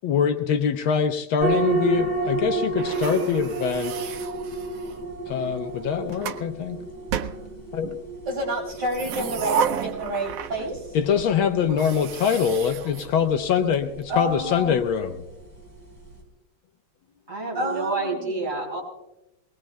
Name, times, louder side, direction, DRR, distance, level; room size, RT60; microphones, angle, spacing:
voice 1, 0.0-4.2 5.3-6.8 7.7-7.9 10.9-15.1, left 7 dB, 75° left, 7 dB, 1.6 m, -24 dB
sound 1, 1.4-16.2, right 3 dB, 10° left, 4.2 m, -32 dB
sound 2, 2.8-5.0 5.8-6.5 7.1-8.0 8.7-10.9 11.2-11.3 11.7-13.7, right 7 dB, 90° right, 0.7 m, -32 dB
voice 2, 8.3-11.0 14.1-14.8 17.6-18.4, right 1 dB, 55° right, -4 dB, 6.0 m, -29 dB
voice 3, 17.3-18.8, right 3 dB, 35° right, -2 dB, 4.4 m, -29 dB
22.5 x 19.5 x 2.2 m, 0.93 s
omnidirectional pair, 2.3 m